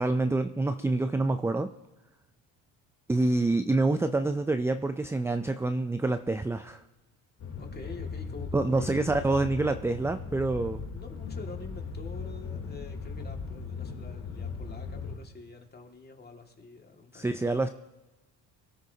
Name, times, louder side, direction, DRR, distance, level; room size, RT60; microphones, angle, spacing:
voice 1, 0.0-1.7 3.1-6.8 8.5-10.8 17.1-17.7, right 2 dB, 5° right, 9 dB, 0.4 m, -27 dB
sound 1, 7.4-15.2, left 5 dB, 50° left, 3.2 m, -38 dB
voice 2, 7.6-9.3 10.5-17.4, left 3 dB, 25° left, 2 dB, 2.1 m, -47 dB
23.5 x 13.0 x 2.8 m, 1.1 s
cardioid pair, 95°, 39 cm